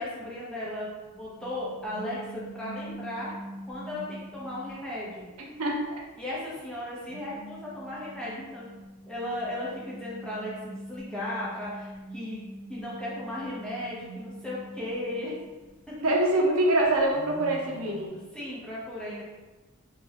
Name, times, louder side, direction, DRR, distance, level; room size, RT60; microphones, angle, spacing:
voice 1, 0.0-3.3 3.7-5.3 6.2-8.7 9.1-12.4 12.7-15.4 15.9-16.0 18.3-19.2, left 1 dB, 5° left, -8 dB, 0.5 m, -36 dB
sound 1, 1.3-5.1 5.5-5.7 7.0-16.1 16.4-16.5 16.8-18.1, right 1 dB, 65° left, 0.8 m, -44 dB
voice 2, 5.4-6.0 16.0-18.1, right 1 dB, 75° right, -1 dB, 0.5 m, -25 dB
2.3 x 2.1 x 3.3 m, 1.2 s
head